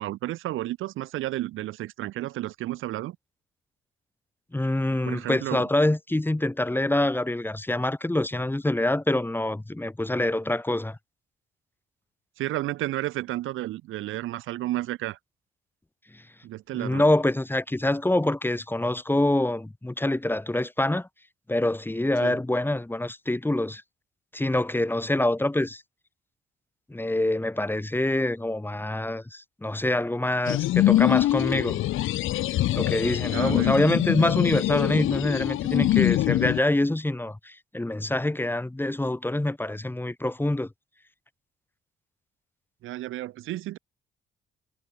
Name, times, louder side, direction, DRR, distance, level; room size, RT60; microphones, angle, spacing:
voice 1, 0.0-3.2 5.0-5.7 12.4-15.2 16.4-17.0 22.2-22.4 33.3-33.8 42.8-43.8, right 15 dB, 90° right, 7.9 m, -32 dB
voice 2, 4.5-11.0 16.7-21.1 21.5-23.8 24.3-25.8 26.9-31.8 32.7-40.7, left 1 dB, 10° left, 4.9 m, -25 dB
sound 1, 30.5-36.6, left 15 dB, 85° left, 3.2 m, -24 dB
cardioid pair, 90°, 20 cm